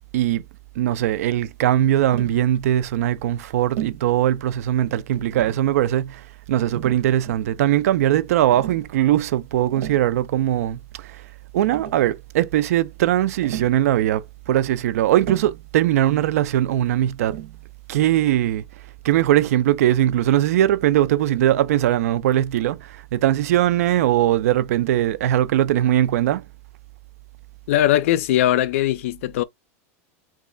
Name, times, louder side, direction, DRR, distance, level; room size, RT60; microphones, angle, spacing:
voice 1, 0.8-11.2 11.5-17.4 17.9-18.6 19.0-26.4, right 12 dB, 80° right, 0.4 m, -20 dB
Tap, 2.1-2.4 3.8-4.1 5.1-5.7 6.7-7.5 8.5-8.9 9.6-10.1 11.2-11.3 11.6-12.1 13.4-13.8 15.2-15.7 17.3-17.6, right 11 dB, 60° right, 0.8 m, -34 dB
voice 2, 27.7-29.4, left 13 dB, 65° left, 0.4 m, -20 dB
3.1 x 2.4 x 3.7 m
supercardioid pair, 175°, 8 cm